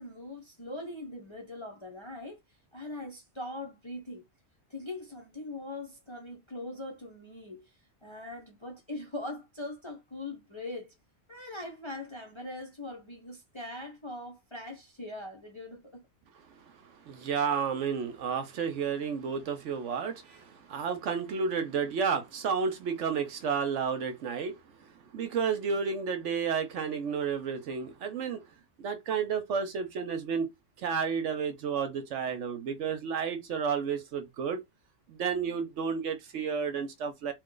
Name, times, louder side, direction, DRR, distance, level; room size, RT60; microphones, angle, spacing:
voice 1, 0.0-2.4 2.7-4.2 4.7-7.6 8.0-10.9 11.3-16.1, left 2 dB, 30° left, 0.6 m, -41 dB
voice 2, 17.0-28.4 28.8-30.5 30.8-34.6 35.1-37.3, right 6 dB, 65° right, 0.9 m, -31 dB
3.0 x 2.2 x 3.7 m
omnidirectional pair, 1.4 m